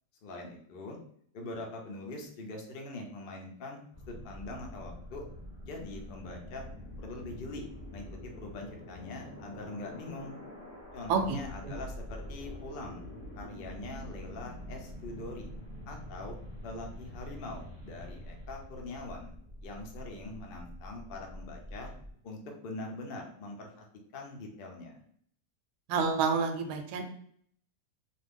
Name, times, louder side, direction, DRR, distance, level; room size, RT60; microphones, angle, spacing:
voice 1, 0.2-1.0 1.3-3.8 4.1-5.2 5.6-6.6 7.0-7.6 7.9-10.4 10.9-13.0 13.3-15.5 15.9-16.4 16.6-19.3 19.6-21.9 22.2-23.8 24.1-25.0, left 2 dB, 90° left, 1 dB, 0.4 m, -43 dB
sound 1, 3.9-22.1, equal, 10° left, 0.9 m, -45 dB
voice 2, 25.9-27.0, right 5 dB, 75° right, 5 dB, 1.1 m, -28 dB
2.7 x 2.4 x 3.5 m, 0.63 s
omnidirectional pair, 1.8 m